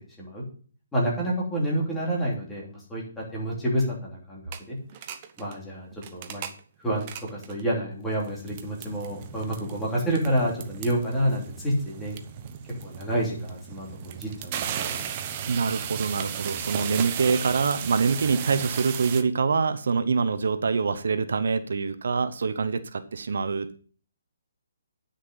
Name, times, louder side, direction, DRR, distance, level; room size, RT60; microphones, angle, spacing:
voice 1, 0.9-4.4 4.7-4.8 5.4-6.4 6.8-7.0 7.3-12.2 12.8-15.0, right 1 dB, 5° left, -5 dB, 3.1 m, -28 dB
sound 1, 4.5-4.6 4.9-5.5 5.9-6.6 7.0-7.6 8.1-19.2, right 9 dB, 30° right, 0.9 m, -36 dB
voice 2, 15.4-23.8, right 5 dB, 70° right, 10 dB, 0.8 m, -25 dB
9.9 x 6.4 x 5.4 m, 0.43 s
hypercardioid pair, 165°, 0 cm